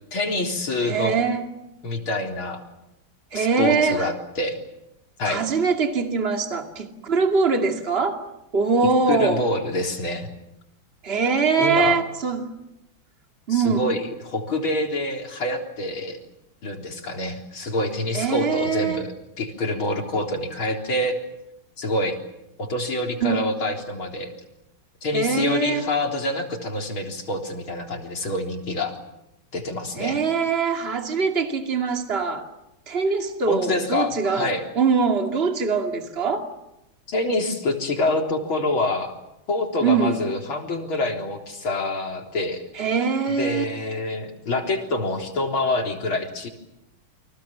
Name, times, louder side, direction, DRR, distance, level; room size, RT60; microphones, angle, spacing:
voice 1, 0.1-1.2 1.8-2.6 3.3-4.6 5.2-5.4 9.1-10.3 11.6-12.0 13.5-16.2 16.6-19.1 19.4-21.2 21.8-22.1 22.6-24.3 25.0-28.9 29.5-30.2 33.5-34.6 37.1-39.1 39.5-42.6 43.4-46.5, left 2 dB, 80° left, 3 dB, 4.6 m, -26 dB
voice 2, 0.8-1.5 3.3-4.1 5.2-8.2 8.5-9.5 11.0-12.5 13.5-13.9 18.1-19.0 23.2-23.4 25.1-25.9 29.9-32.5 32.9-36.5 39.8-40.2 42.7-43.7, right 5 dB, 30° right, 4 dB, 2.7 m, -23 dB
30.0 x 25.0 x 7.4 m, 0.90 s
omnidirectional pair, 2.2 m